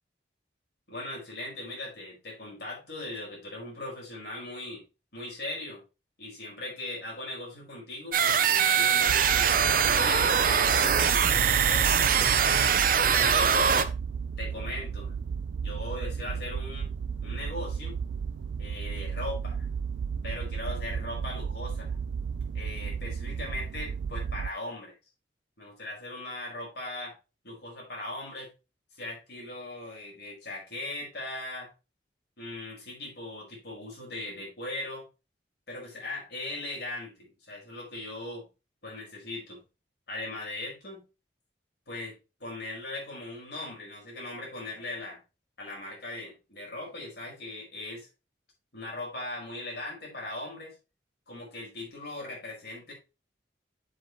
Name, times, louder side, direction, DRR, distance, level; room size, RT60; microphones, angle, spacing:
voice 1, 0.9-4.8 5.1-5.8 6.2-9.6 9.8-12.0 12.6-13.9 14.4-15.1 15.6-16.9 17.2-18.0 18.6-19.7 20.2-22.0 22.5-24.9 25.6-27.2 27.4-28.5 29.0-31.7 32.4-35.1 35.7-38.5 38.8-39.6 40.1-41.0 41.9-45.2 45.6-48.1 48.7-50.7 51.3-52.9, left 2 dB, 65° left, -3 dB, 5.2 m, -39 dB
sound 1, 8.1-13.8, right 7 dB, 45° right, 0.7 m, -23 dB
sound 2, 9.1-24.5, right 6 dB, 75° right, 0.3 m, -34 dB
7.7 x 7.7 x 3.1 m, 0.28 s
head